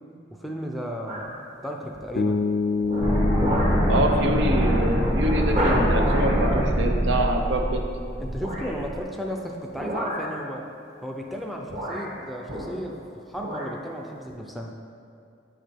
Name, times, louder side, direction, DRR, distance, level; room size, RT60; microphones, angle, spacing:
voice 1, 0.3-2.5 8.2-10.7 11.0-14.7, equal, ahead, 1 dB, 0.5 m, -34 dB
sound 1, 1.1-1.4 1.9-2.3 2.8-3.9 4.3-4.4 4.8-4.9 5.5-6.4 8.3-8.8 9.7-10.4 11.3-11.4 11.7-13.0 13.3-13.8 14.3-14.4, equal, 40° right, 1.5 m, -30 dB
Bass guitar, 2.2-6.2, left 4 dB, 75° left, 0.4 m, -28 dB
sound 2, 3.0-9.0, equal, 20° right, 1.2 m, -24 dB
voice 2, 3.9-7.8, right 1 dB, 75° right, 3 dB, 0.8 m, -25 dB
9.0 x 5.0 x 4.5 m, 2.5 s
head